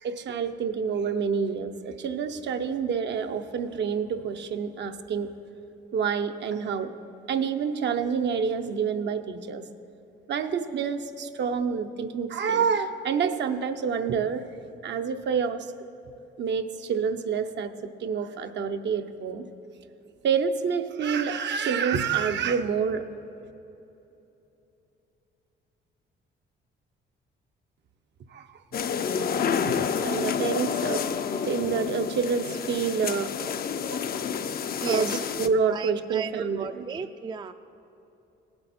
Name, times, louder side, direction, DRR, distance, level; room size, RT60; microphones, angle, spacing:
voice 1, 0.0-5.3 5.9-6.9 7.3-9.6 10.3-14.4 14.8-15.7 16.4-17.7 18.0-19.5 20.2-23.0 28.3-28.5 29.6-31.0 31.4-33.3 33.9-34.2 34.9-36.9, right 6 dB, 65° right, 7 dB, 0.7 m, -28 dB
sound 1, 28.7-35.5, left 7 dB, 50° left, 0.5 m, -29 dB
voice 2, 34.8-35.2 35.7-37.5, right 5 dB, 25° right, 9 dB, 0.4 m, -34 dB
17.5 x 7.8 x 4.3 m, 2.9 s
cardioid pair, 90°, 20 cm